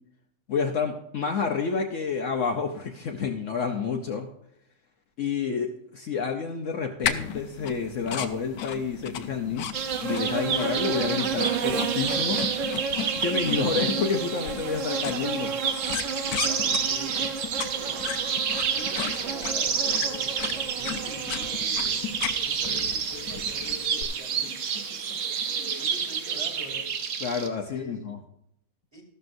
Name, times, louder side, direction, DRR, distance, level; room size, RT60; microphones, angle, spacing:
voice 1, 0.5-4.3 5.2-9.7 10.0-12.4 13.2-15.5 27.2-28.2, left 5 dB, 60° left, 3 dB, 1.1 m, -29 dB
sound 1, 7.0-24.0, left 8 dB, 85° left, 1.2 m, -36 dB
sound 2, 9.7-27.5, right 6 dB, 60° right, 1.1 m, -28 dB
voice 2, 16.2-22.0 22.4-24.6 24.9-25.0 25.4-26.8 27.7-28.1 28.9-29.0, equal, 20° right, 1 dB, 2.6 m, -45 dB
13.5 x 12.0 x 2.6 m, 0.74 s
omnidirectional pair, 1.6 m